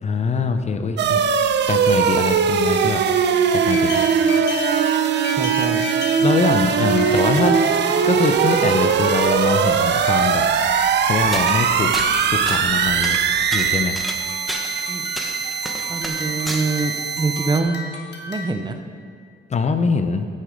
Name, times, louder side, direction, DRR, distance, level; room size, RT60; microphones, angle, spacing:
voice 1, 0.0-1.3 1.7-3.0 3.5-4.3 4.7-5.0 6.2-7.6 8.0-10.5 11.0-13.2 13.5-14.0 19.5-20.3, left 4 dB, 35° left, 8 dB, 0.6 m, -23 dB
sound 1, 1.0-17.6, right 7 dB, 60° right, 0.6 m, -20 dB
sound 2, 3.7-18.7, left 2 dB, 60° left, 1.6 m, -35 dB
voice 2, 5.4-5.8 14.9-15.1 15.9-17.8 18.3-18.8, right 3 dB, 20° right, 6 dB, 0.7 m, -24 dB
sound 3, 11.3-11.6 11.9-12.7 13.0-14.8 15.1-16.6, equal, ahead, 1.1 m, -30 dB
9.8 x 6.3 x 5.1 m, 2.1 s
cardioid pair, 90°, 20 cm